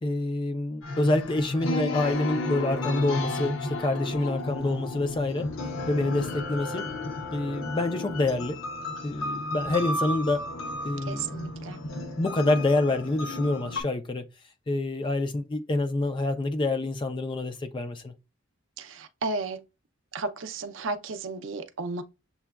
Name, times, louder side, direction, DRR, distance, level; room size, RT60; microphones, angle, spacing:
voice 1, 0.0-5.5 5.9-6.8 7.3-8.6 9.0-10.4 10.8-11.5 12.2-14.2 14.7-18.1, left 2 dB, 25° left, 0.4 m, -27 dB
sound 1, 0.8-13.8, left 2 dB, 85° left, 0.7 m, -33 dB
voice 2, 11.1-11.8 18.8-19.6 20.1-22.0, right 3 dB, 70° right, 0.5 m, -33 dB
6.9 x 2.3 x 2.2 m
head